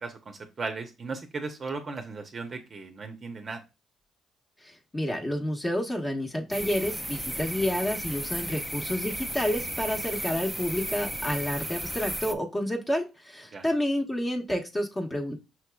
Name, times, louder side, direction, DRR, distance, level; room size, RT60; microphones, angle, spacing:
voice 1, 0.0-3.6 13.5-13.6, right 4 dB, 40° right, 5 dB, 0.6 m, -36 dB
voice 2, 4.6-15.4, equal, 20° left, 2 dB, 0.9 m, -29 dB
sound 1, 6.5-12.3, right 1 dB, 5° right, 0.4 m, -34 dB
5.8 x 2.9 x 2.2 m, 0.27 s
cardioid pair, 90°, 0 cm